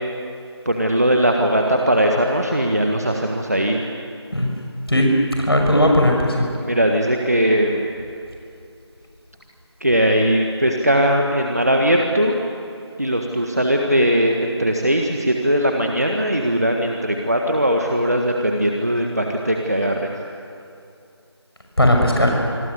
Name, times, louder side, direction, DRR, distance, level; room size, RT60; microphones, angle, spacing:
voice 1, 0.6-3.8 6.6-7.9 9.8-12.4 13.0-20.1, equal, 35° right, 2 dB, 1.6 m, -19 dB
voice 2, 5.5-6.5 21.8-22.4, left 1 dB, 60° left, 1 dB, 6.2 m, -16 dB
26.0 x 23.0 x 8.3 m, 2.5 s
figure-of-eight pair, 180°, 15 cm